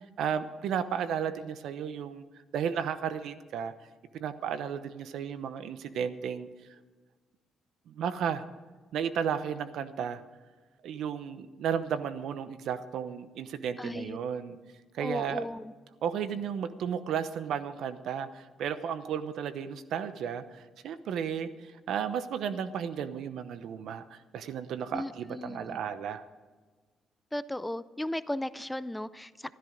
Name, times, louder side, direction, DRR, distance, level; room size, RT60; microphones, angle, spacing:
voice 1, 0.2-2.2 2.5-3.7 4.1-6.5 7.9-8.4 8.9-10.2 10.8-14.6 14.9-15.4 16.0-26.3, right 8 dB, 75° right, 13 dB, 0.8 m, -33 dB
voice 2, 13.8-14.2 15.0-15.7 24.9-25.8 27.3-29.5, left 1 dB, 10° left, 15 dB, 0.5 m, -36 dB
13.5 x 13.0 x 5.1 m, 1.4 s
cardioid pair, 90°, 0 cm